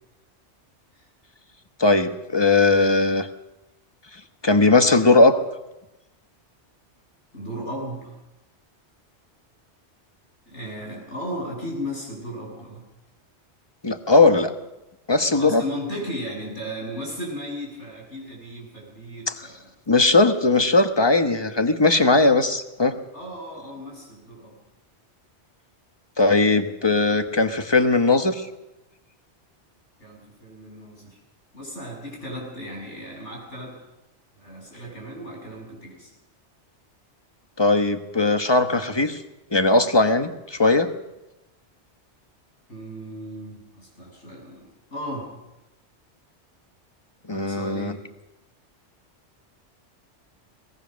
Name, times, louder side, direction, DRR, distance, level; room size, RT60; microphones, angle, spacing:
voice 1, 1.8-3.3 4.4-5.4 13.8-14.5 15.1-15.6 19.3-19.4 19.9-23.0 26.2-28.5 37.6-39.2 39.5-40.9 47.3-47.9, left 3 dB, 20° left, 7 dB, 1.2 m, -19 dB
voice 2, 7.3-8.2 10.5-12.8 15.3-19.6 23.1-24.6 30.0-31.2 31.5-33.8 34.4-36.1 42.7-44.7 44.9-45.3 47.3-48.0, equal, 75° left, -1 dB, 7.7 m, -35 dB
22.0 x 19.0 x 6.4 m, 0.99 s
omnidirectional pair, 1.2 m